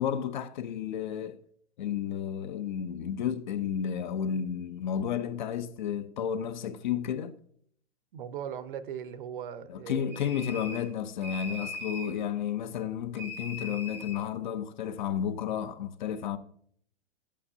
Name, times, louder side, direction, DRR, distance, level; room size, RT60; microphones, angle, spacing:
voice 1, 0.0-1.4 1.8-7.4 9.7-16.4, left 8 dB, 45° left, 0.6 m, -32 dB
voice 2, 8.1-10.2, right 8 dB, 50° right, 0.7 m, -39 dB
sound 1, 10.1-10.9 11.2-12.2 13.2-14.2, left 2 dB, 5° right, 0.4 m, -40 dB
13.0 x 8.5 x 2.7 m
hypercardioid pair, 150°, 34 cm